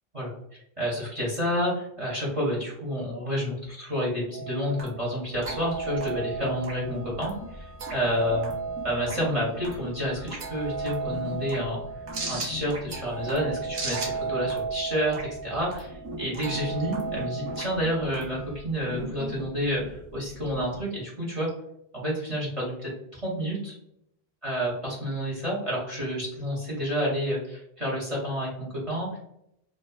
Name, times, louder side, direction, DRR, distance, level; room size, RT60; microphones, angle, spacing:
voice 1, 0.8-8.5 8.8-11.8 12.3-18.4 18.6-21.5 21.9-23.7 24.4-29.2, equal, 35° right, -5 dB, 0.8 m, -29 dB
sound 1, 4.3-18.6, right 4 dB, 60° right, 0.9 m, -35 dB
sound 2, 5.3-20.8, left 1 dB, 15° left, 0.5 m, -42 dB
2.5 x 2.3 x 2.3 m, 0.76 s
omnidirectional pair, 1.0 m